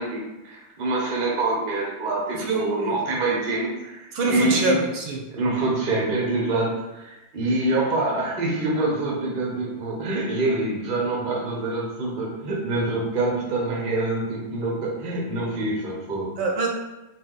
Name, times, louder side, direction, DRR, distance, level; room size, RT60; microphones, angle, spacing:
voice 1, 0.0-4.8 5.3-16.3, right 2 dB, 45° right, -3 dB, 0.6 m, -26 dB
voice 2, 2.4-3.0 4.1-5.2 16.4-16.7, right 3 dB, 75° right, 1 dB, 1.3 m, -24 dB
4.3 x 2.6 x 3.8 m, 1.0 s
omnidirectional pair, 2.3 m